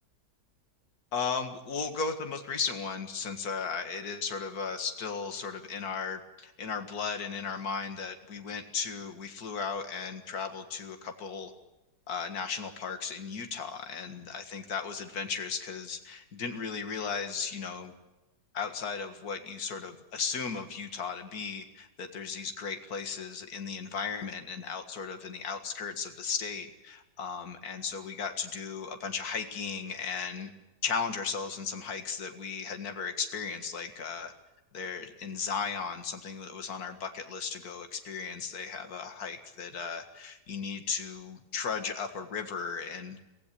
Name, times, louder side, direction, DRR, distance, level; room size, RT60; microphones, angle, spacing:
voice 1, 1.1-11.5 12.1-17.9 18.5-30.5 30.8-34.3 34.7-43.2, left 5 dB, 60° left, 6 dB, 2.3 m, -36 dB
24.0 x 16.0 x 8.5 m, 1.0 s
omnidirectional pair, 1.8 m